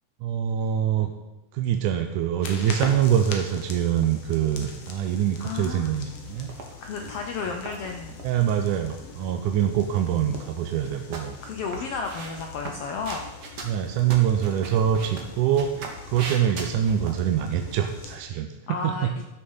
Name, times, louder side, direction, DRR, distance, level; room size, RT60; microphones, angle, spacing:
voice 1, 0.2-1.1 1.5-6.5 8.2-11.4 13.7-18.5 18.8-19.1, right 9 dB, 85° right, 5 dB, 2.2 m, -24 dB
sound 1, 2.4-18.2, left 5 dB, 60° left, 2.1 m, -42 dB
voice 2, 5.4-6.0 6.8-8.1 11.4-13.2 18.7-19.2, left 5 dB, 75° left, 4 dB, 1.4 m, -33 dB
sound 2, 6.3-8.3 9.9-10.6 10.8-17.1, right 4 dB, 50° right, 1.4 m, -39 dB
13.0 x 6.3 x 5.5 m, 1.0 s
omnidirectional pair, 3.5 m